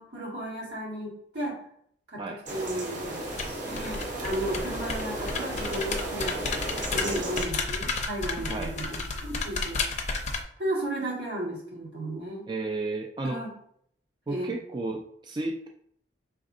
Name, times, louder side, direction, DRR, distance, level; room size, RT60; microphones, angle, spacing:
voice 1, 0.0-1.6 2.1-3.2 3.6-6.4 6.9-9.8 10.6-12.4 13.2-13.5 14.3-14.6, right 1 dB, 75° right, -4 dB, 1.7 m, -34 dB
sound 1, 2.5-7.5, right 1 dB, 45° right, 1.0 m, -34 dB
sound 2, 3.2-10.4, left 3 dB, 40° left, 0.5 m, -32 dB
voice 2, 12.5-13.4 14.3-15.7, right 2 dB, 25° right, 2 dB, 0.3 m, -33 dB
4.9 x 3.4 x 2.6 m, 0.66 s
head